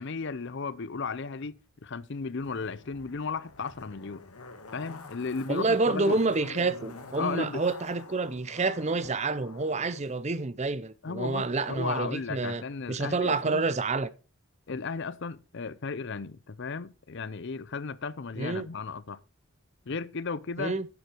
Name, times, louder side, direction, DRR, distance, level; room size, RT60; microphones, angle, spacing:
voice 1, 0.0-4.2 4.7-6.2 7.2-7.6 11.0-13.7 14.7-19.2 19.9-20.7, left 4 dB, 55° left, 0.6 m, -35 dB
Zipper (clothing), 2.4-10.0 10.3-10.4, left 3 dB, 85° left, 1.9 m, -47 dB
voice 2, 5.5-12.6 12.9-14.1 18.4-18.7 20.6-20.9, right 3 dB, 30° right, 0.6 m, -28 dB
11.0 x 7.9 x 4.5 m
head